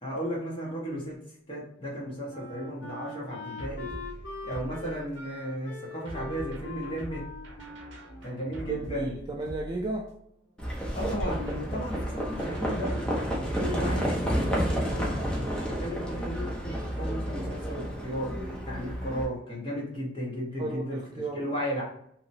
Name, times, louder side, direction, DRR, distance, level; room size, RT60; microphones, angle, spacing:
voice 1, 0.0-1.2 1.5-3.9 4.4-7.3 8.2-9.2 10.9-21.0 21.3-21.8, equal, 30° left, -5 dB, 1.2 m, -35 dB
Wind instrument woodwind instrument, 1.9-9.1, left 3 dB, 65° left, 0.9 m, -43 dB
sound 1, 3.6-5.3 6.0-10.2 11.0-13.5, right 1 dB, 70° right, 0.7 m, -43 dB
voice 2, 8.7-10.1 20.6-21.5, right 2 dB, 20° right, 0 dB, 0.3 m, -34 dB
Livestock farm animals working animals, 10.6-19.2, equal, 5° left, 0.7 m, -30 dB
2.9 x 2.8 x 2.7 m, 0.71 s
head